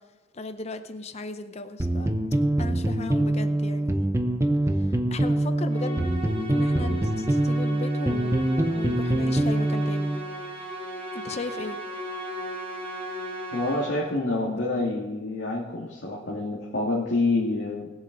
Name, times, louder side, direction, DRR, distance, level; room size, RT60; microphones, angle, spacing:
voice 1, 0.3-2.1 2.6-4.1 4.8-6.1 6.5-10.1 11.1-11.8, left 2 dB, 35° left, 9 dB, 0.6 m, -37 dB
sound 1, 1.8-10.2, right 1 dB, 15° right, 0.7 m, -24 dB
Musical instrument, 5.7-14.2, equal, 30° right, 4.2 m, -36 dB
voice 2, 13.5-17.9, left 2 dB, 75° left, -5 dB, 1.9 m, -27 dB
20.0 x 7.2 x 3.9 m, 1.3 s
head